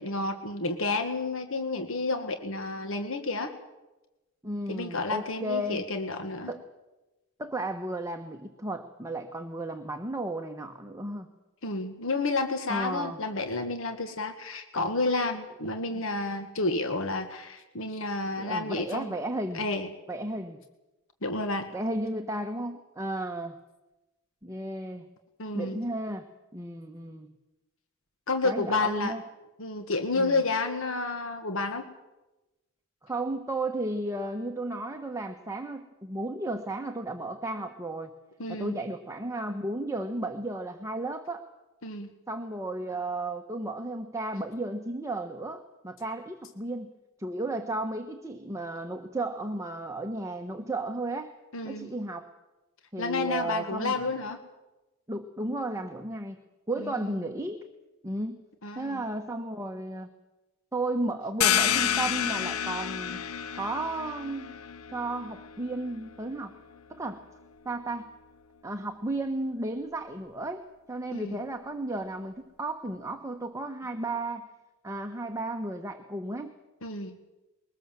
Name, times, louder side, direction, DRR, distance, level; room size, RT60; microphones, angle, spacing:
voice 1, 0.0-3.5 4.7-6.5 11.6-19.1 19.5-19.9 21.2-21.7 25.4-25.9 28.3-29.1 29.6-31.9 38.4-38.8 41.8-42.1 51.5-51.9 53.0-54.4 56.8-56.9 58.6-59.0 71.1-71.4 76.8-77.2, left 3 dB, 65° left, 7 dB, 1.6 m, -30 dB
voice 2, 4.4-5.8 6.5-6.6 7.4-11.3 12.7-13.2 15.9-16.0 18.4-19.6 20.1-20.6 21.7-23.6 24.4-25.1 25.5-26.3 26.5-27.3 28.4-29.2 30.1-30.4 33.0-38.1 38.5-41.5 42.3-46.9 47.2-51.3 51.6-52.3 52.9-54.0 55.1-56.4 56.7-57.6 58.0-58.4 58.7-60.1 60.7-63.2 63.5-64.5 64.9-66.6 66.9-67.2 67.6-68.1 68.6-70.6 70.9-74.5 74.8-76.5, right 2 dB, 15° right, 5 dB, 1.1 m, -34 dB
sound 1, 61.4-66.8, left 9 dB, 80° left, 0.8 m, -30 dB
22.0 x 19.5 x 7.5 m, 1.1 s
head